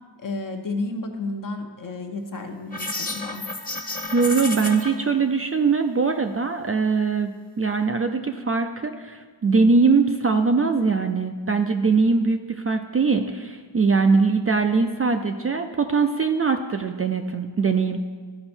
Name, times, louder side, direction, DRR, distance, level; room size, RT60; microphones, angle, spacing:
voice 1, 0.2-3.4, left 2 dB, 45° left, 4 dB, 0.9 m, -32 dB
sound 1, 2.7-4.9, left 2 dB, 20° left, 1.0 m, -31 dB
voice 2, 4.1-18.0, right 4 dB, 30° right, 6 dB, 0.4 m, -22 dB
12.5 x 4.3 x 4.4 m, 1.5 s
wide cardioid pair, 85°, 45 cm